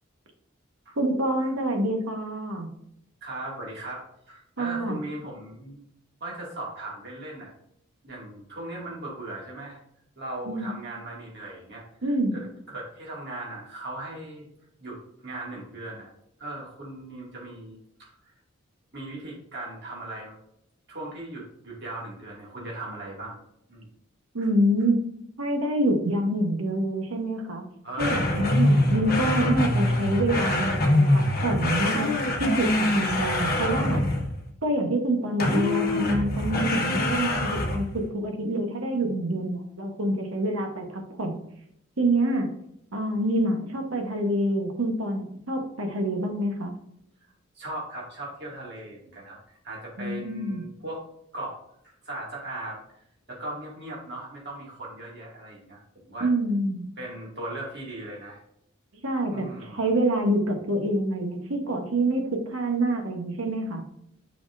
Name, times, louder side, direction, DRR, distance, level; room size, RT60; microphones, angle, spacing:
voice 1, 1.0-2.7 4.6-5.0 10.5-10.7 12.0-12.4 24.3-25.0 25.4-27.6 28.0-34.0 34.6-41.4 42.0-42.5 42.9-46.7 50.0-50.6 56.2-56.9 59.0-63.8, right 1 dB, 80° right, 3 dB, 1.1 m, -26 dB
voice 2, 3.2-5.8 6.2-7.5 8.0-9.8 10.2-11.8 12.3-12.4 12.7-14.5 14.8-15.0 15.2-16.1 16.4-18.1 18.9-20.3 20.9-23.4 23.7-23.9 24.4-24.5 27.8-28.5 47.5-51.0 51.3-51.6 51.8-52.8 53.3-56.3 57.0-58.4 59.2-59.9, right 2 dB, 55° right, -4 dB, 2.2 m, -38 dB
sound 1, 28.0-34.4 35.4-38.0, left 1 dB, 45° left, 1.0 m, -24 dB
6.3 x 5.8 x 2.6 m, 0.73 s
head